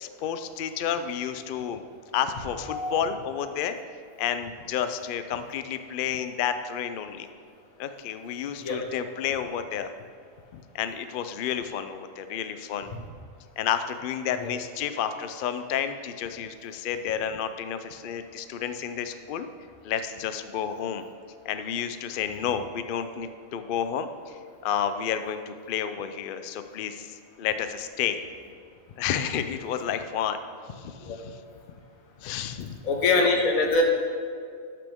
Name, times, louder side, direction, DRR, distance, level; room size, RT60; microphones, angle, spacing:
voice 1, 0.0-1.8 2.1-3.7 4.2-7.3 7.8-9.9 10.5-12.9 13.6-19.5 19.8-21.0 21.4-28.2 29.0-30.4 30.7-31.4 32.2-32.8 33.2-33.3, left 8 dB, 65° left, 10 dB, 0.5 m, -31 dB
voice 2, 32.8-33.8, left 3 dB, 85° left, 1 dB, 1.6 m, -23 dB
13.0 x 5.9 x 3.5 m, 2.2 s
omnidirectional pair, 1.4 m